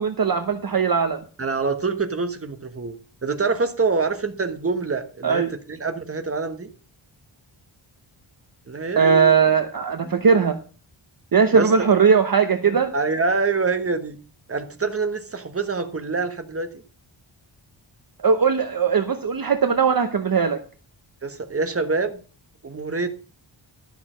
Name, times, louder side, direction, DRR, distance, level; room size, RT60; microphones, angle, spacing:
voice 1, 0.0-1.2 5.2-5.5 9.0-10.6 11.3-12.9 18.2-20.6, right 6 dB, 45° right, 7 dB, 1.0 m, -19 dB
voice 2, 1.4-2.9 3.2-5.4 5.7-6.7 8.7-9.3 10.0-10.1 11.5-11.9 12.9-14.2 14.5-16.7 21.2-22.2 22.6-23.1, right 4 dB, 30° right, 8 dB, 1.4 m, -25 dB
12.5 x 6.9 x 5.1 m, 0.37 s
wide cardioid pair, 100°, 48 cm